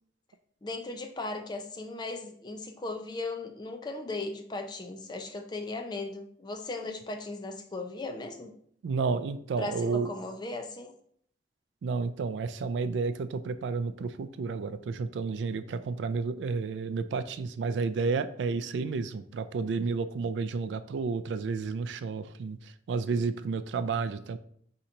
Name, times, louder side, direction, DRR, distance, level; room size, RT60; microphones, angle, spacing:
voice 1, 0.6-8.5 9.6-10.9, left 2 dB, 25° left, 5 dB, 0.4 m, -37 dB
voice 2, 8.8-10.1 11.8-22.6 22.9-24.4, right 4 dB, 80° right, 12 dB, 0.3 m, -31 dB
3.8 x 2.9 x 4.3 m, 0.63 s
head